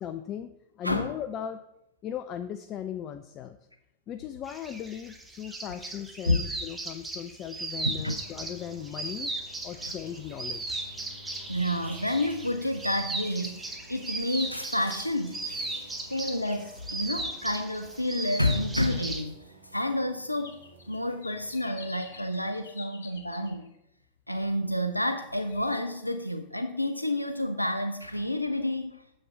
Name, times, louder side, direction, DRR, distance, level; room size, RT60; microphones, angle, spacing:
voice 1, 0.0-1.6 2.0-3.6 4.1-9.3 9.6-10.8, left 9 dB, 35° left, 9 dB, 0.4 m, -38 dB
voice 2, 0.8-1.2 6.3-6.4 8.0-8.2 9.8-9.9 11.5-15.8 16.1-19.4 19.7-20.6 20.9-23.7 24.3-29.0, left 1 dB, 90° left, 7 dB, 0.4 m, -29 dB
sound 1, 4.5-19.2, right 2 dB, 10° right, 1.1 m, -37 dB
sound 2, 7.9-22.5, equal, 75° right, 1.2 m, -53 dB
sound 3, 8.9-12.2 12.7-12.8 13.3-13.7 14.5-16.2 17.2-18.2 18.9-19.0 19.7-19.9 20.3-23.8 24.8-25.2 25.5-25.8, left 4 dB, 65° left, 1.3 m, -51 dB
7.6 x 6.4 x 4.6 m, 0.84 s
figure-of-eight pair, 90°, 0 cm